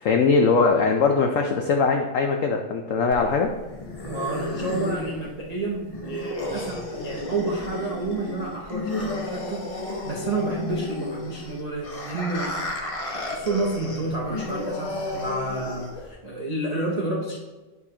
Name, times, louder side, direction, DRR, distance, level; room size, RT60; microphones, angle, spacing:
voice 1, 0.0-3.5, left 4 dB, 85° left, 3 dB, 0.7 m, -21 dB
sound 1, 3.1-16.1, left 2 dB, 50° left, 0.4 m, -33 dB
voice 2, 4.0-12.7 13.1-17.4, right 2 dB, 60° right, -3 dB, 0.4 m, -30 dB
9.7 x 4.1 x 2.8 m, 1.2 s
omnidirectional pair, 2.0 m